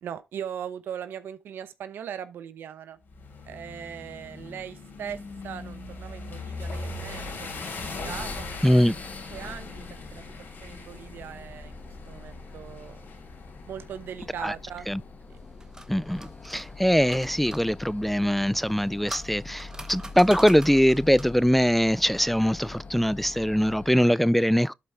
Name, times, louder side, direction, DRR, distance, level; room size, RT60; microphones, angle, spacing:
voice 1, 0.0-3.0 3.4-7.5 8.0-10.2 10.6-11.7 12.1-13.0 13.7-14.9 15.3-15.4, right 8 dB, 75° right, 0.8 m, -39 dB
sound 1, 3.1-15.2, left 3 dB, 75° left, 3.7 m, -40 dB
sound 2, 8.0-24.2, left 3 dB, 45° left, 1.1 m, -44 dB
voice 2, 8.6-8.9 14.4-14.5 14.9-15.0 15.9-24.7, equal, 5° left, 0.3 m, -22 dB
sound 3, 15.3-17.6 18.6-21.4, right 1 dB, 20° right, 1.1 m, -43 dB
11.5 x 5.0 x 3.5 m
supercardioid pair, 45°, 4 cm